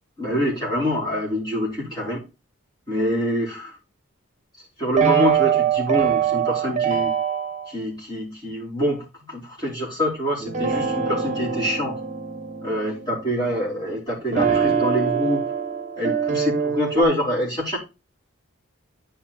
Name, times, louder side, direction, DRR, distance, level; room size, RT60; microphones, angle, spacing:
voice 1, 0.2-2.2 2.9-3.8 4.8-7.1 7.7-12.0 12.6-15.5 16.0-17.8, equal, 20° left, -4 dB, 3.5 m, -25 dB
sound 1, 5.0-7.7 10.4-13.8 14.3-17.0, right 7 dB, 35° right, 1.1 m, -23 dB
10.5 x 4.6 x 4.2 m, 0.28 s
head